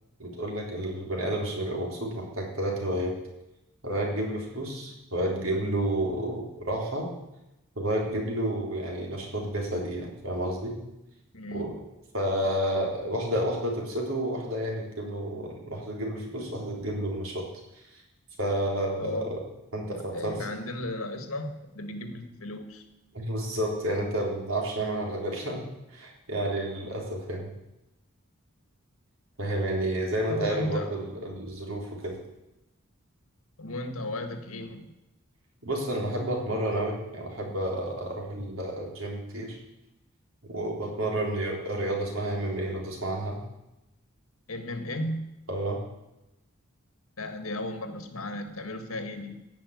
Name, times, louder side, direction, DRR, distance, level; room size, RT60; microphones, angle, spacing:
voice 1, 0.2-3.1 3.8-7.1 7.8-10.8 11.5-11.8 12.1-17.5 18.4-19.4 19.7-20.4 23.1-25.6 25.9-27.5 29.4-32.2 35.6-39.6 40.4-43.4 45.5-45.8, right 1 dB, 70° right, -1 dB, 3.8 m, -30 dB
voice 2, 11.3-11.7 19.0-19.3 19.8-22.8 30.3-31.0 33.6-34.9 44.5-45.3 47.2-49.4, left 1 dB, 85° left, 7 dB, 1.8 m, -35 dB
16.0 x 6.1 x 9.4 m, 0.94 s
head